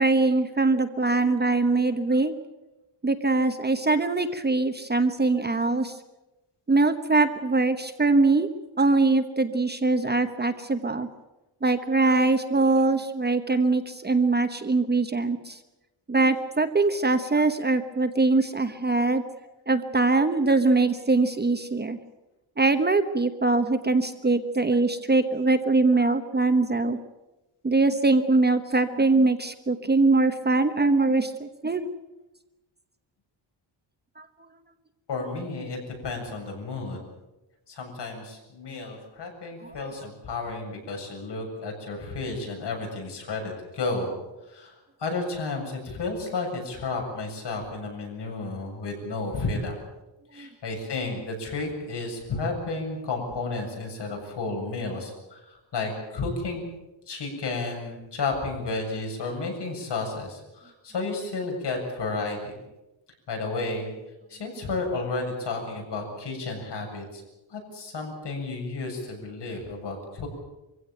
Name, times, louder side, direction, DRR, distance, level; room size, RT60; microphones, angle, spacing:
voice 1, 0.0-2.3 3.0-5.9 6.7-8.5 8.8-11.1 11.6-15.6 16.1-19.2 19.7-22.0 22.6-27.0 27.6-31.9 34.2-34.3 39.6-39.9 50.4-50.5, right 3 dB, 20° right, 8 dB, 1.1 m, -22 dB
voice 2, 35.1-37.0 37.7-44.2 44.5-49.8 50.3-56.6 57.1-62.5 63.3-63.9 64.3-67.2 67.5-70.3, left 3 dB, 60° left, 2 dB, 7.6 m, -32 dB
25.0 x 16.0 x 9.0 m, 1.0 s
wide cardioid pair, 145°, 46 cm